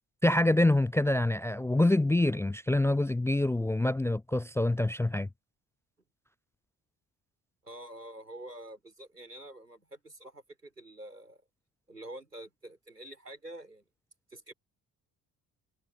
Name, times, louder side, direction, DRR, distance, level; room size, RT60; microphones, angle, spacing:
voice 1, 0.2-5.3, left 1 dB, 5° left, 0.5 m, -26 dB
voice 2, 7.6-11.4 11.9-13.8 14.3-14.5, right 1 dB, 90° right, 4.6 m, -47 dB
figure-of-eight pair, 45°, 46 cm